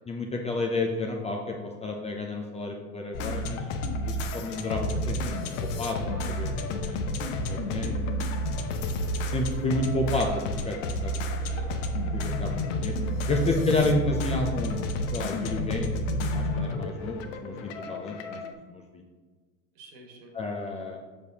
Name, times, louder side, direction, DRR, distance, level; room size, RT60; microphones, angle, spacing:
voice 1, 0.1-3.6 4.0-5.4 5.6-6.0 6.4-7.0 7.4-8.2 9.3-11.4 12.1-13.0 13.3-14.8 15.1-18.4 18.7-19.0 20.3-21.0, left 2 dB, 15° left, 1 dB, 0.4 m, -30 dB
sound 1, 3.1-18.5, left 1 dB, 60° left, 0.8 m, -30 dB
Mechanical fan, 7.3-13.3, right 1 dB, 40° left, 1.4 m, -49 dB
voice 2, 11.4-11.9 13.3-13.6 16.5-17.0 19.7-20.3, right 4 dB, 60° right, 2 dB, 1.6 m, -47 dB
6.5 x 5.2 x 2.8 m, 1.4 s
hypercardioid pair, 100°, 44 cm